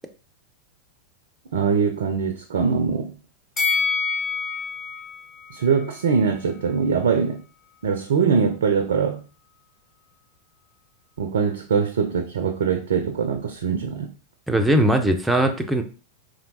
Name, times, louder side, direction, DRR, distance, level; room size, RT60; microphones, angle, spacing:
voice 1, 1.5-3.1 5.5-7.4 7.8-9.2 11.2-14.1, right 6 dB, 65° right, 4 dB, 0.4 m, -22 dB
Bell, 3.6-6.8 7.1-7.2, left 5 dB, 25° left, 1.1 m, -28 dB
voice 2, 14.5-15.8, right 1 dB, 5° right, 4 dB, 0.5 m, -19 dB
3.3 x 2.7 x 2.7 m, 0.35 s
figure-of-eight pair, 90°, 0 cm